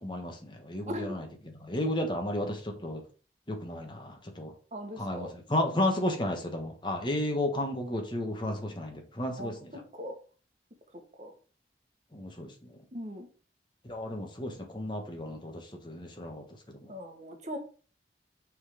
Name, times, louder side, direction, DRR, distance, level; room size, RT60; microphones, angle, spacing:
voice 1, 0.0-3.0 3.5-4.5 5.0-9.8 12.1-12.8 13.8-16.9, left 1 dB, 25° left, 3 dB, 1.3 m, -33 dB
voice 2, 4.7-5.3 8.4-8.5 9.4-9.5 10.0-10.2 11.2-11.3 12.9-13.3 16.9-17.6, equal, 40° right, 3 dB, 1.4 m, -39 dB
6.3 x 3.8 x 4.9 m, 0.38 s
head